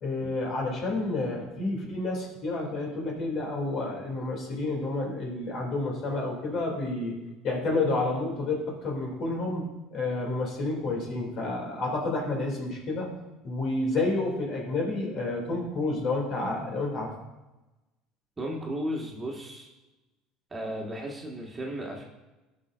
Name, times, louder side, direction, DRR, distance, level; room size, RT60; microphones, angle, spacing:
voice 1, 0.0-7.2 7.4-9.7 9.9-13.1 13.4-17.1, left 2 dB, 55° left, -1 dB, 2.5 m, -30 dB
voice 2, 18.4-19.7 20.5-22.0, equal, 20° right, -1 dB, 1.6 m, -35 dB
15.0 x 5.6 x 2.5 m, 1.1 s
supercardioid pair, 105°, 0 cm